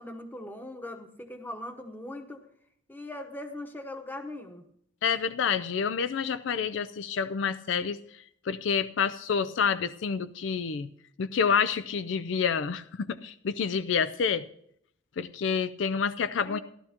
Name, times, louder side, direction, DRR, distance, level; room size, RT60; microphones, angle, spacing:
voice 1, 0.0-2.4 2.9-4.6 16.4-16.6, left 1 dB, 10° left, 6 dB, 1.0 m, -40 dB
voice 2, 5.0-8.0 8.5-10.9 11.2-14.4 15.2-16.6, left 6 dB, 70° left, 14 dB, 0.4 m, -28 dB
15.0 x 12.0 x 2.9 m, 0.70 s
head